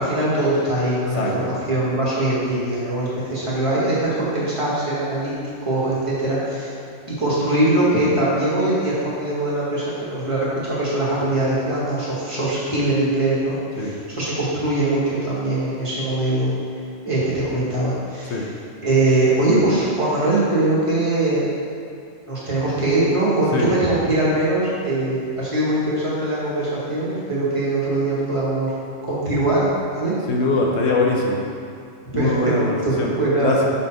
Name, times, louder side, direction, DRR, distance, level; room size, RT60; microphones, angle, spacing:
voice 1, 0.0-5.3 5.6-6.7 7.2-16.5 17.0-18.5 18.8-21.5 22.3-28.7 29.1-29.6 29.9-30.1 32.1-32.5 32.8-33.6, right 2 dB, 25° right, -8 dB, 1.4 m, -22 dB
voice 2, 1.2-1.5 13.8-13.9 18.3-18.5 23.5-23.7 30.3-31.4 32.1-33.1 33.4-33.7, left 3 dB, 65° left, -1 dB, 1.0 m, -22 dB
5.5 x 4.3 x 4.4 m, 2.4 s
omnidirectional pair, 1.3 m